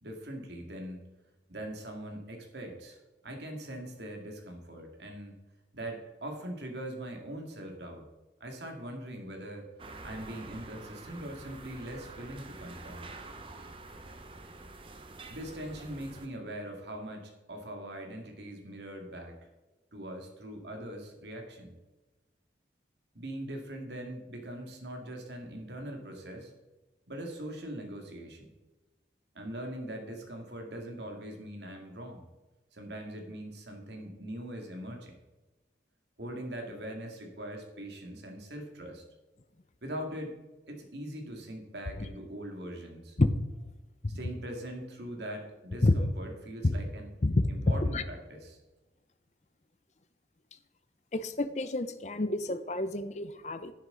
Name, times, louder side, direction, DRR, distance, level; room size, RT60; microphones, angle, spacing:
voice 1, 0.0-1.0 1.5-5.4 5.7-8.1 8.4-9.7 10.0-13.1 15.3-19.4 19.9-21.7 23.1-26.5 27.1-28.5 29.3-32.3 32.7-35.2 36.2-39.0 39.8-40.4 40.7-43.2 44.1-47.1 47.5-48.6, right 1 dB, 80° right, 3 dB, 2.2 m, -41 dB
sound 1, 9.8-16.3, right 2 dB, 30° right, 0.9 m, -47 dB
voice 2, 51.1-53.7, left 2 dB, 40° left, 12 dB, 0.6 m, -28 dB
10.5 x 9.7 x 3.9 m, 1.1 s
head